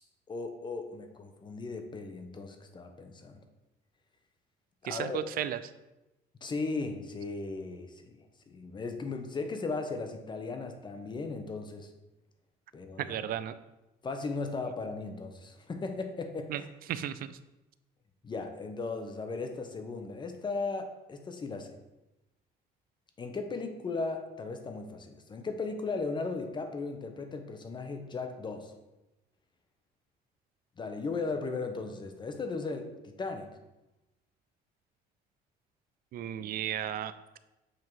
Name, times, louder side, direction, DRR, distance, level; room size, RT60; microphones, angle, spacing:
voice 1, 0.3-3.4 4.8-5.3 6.4-11.9 12.7-13.2 14.0-16.7 18.2-21.7 23.2-28.7 30.8-33.5, left 3 dB, 25° left, 6 dB, 0.8 m, -37 dB
voice 2, 4.8-5.6 13.0-13.5 16.5-16.6 16.9-17.3 36.1-37.4, right 10 dB, 60° right, 13 dB, 0.4 m, -34 dB
7.6 x 2.8 x 4.6 m, 1.0 s
cardioid pair, 110°, 17 cm